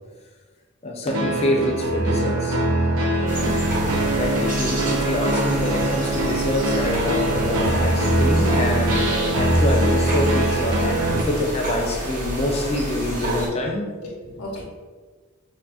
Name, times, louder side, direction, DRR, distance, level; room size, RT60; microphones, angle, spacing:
voice 1, 0.8-2.6 4.1-13.9, left 1 dB, 30° left, 0.4 m, -26 dB
sound 1, 1.1-11.2, right 1 dB, 70° right, 0.5 m, -22 dB
voice 2, 2.9-3.6 14.0-14.6, left 1 dB, 90° left, 0.7 m, -35 dB
sound 2, 3.3-13.5, right 1 dB, 40° right, 0.7 m, -29 dB
5.2 x 2.3 x 2.4 m
head